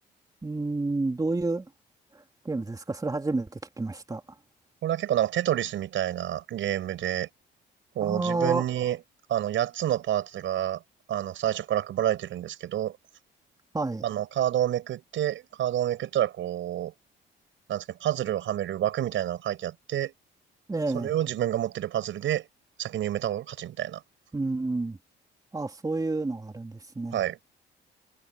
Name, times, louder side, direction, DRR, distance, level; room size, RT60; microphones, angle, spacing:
voice 1, 0.4-1.7 2.1-4.2 8.0-8.6 13.7-14.0 20.7-21.1 24.3-25.0 25.5-27.2, right 3 dB, 20° right, 2.9 m, -29 dB
voice 2, 4.8-7.3 8.0-9.0 9.3-10.8 11.1-13.0 14.0-16.9 17.7-20.1 20.9-22.5 22.8-24.0 27.1-27.4, right 12 dB, 75° right, 6.9 m, -28 dB
cardioid pair, 90°, 20 cm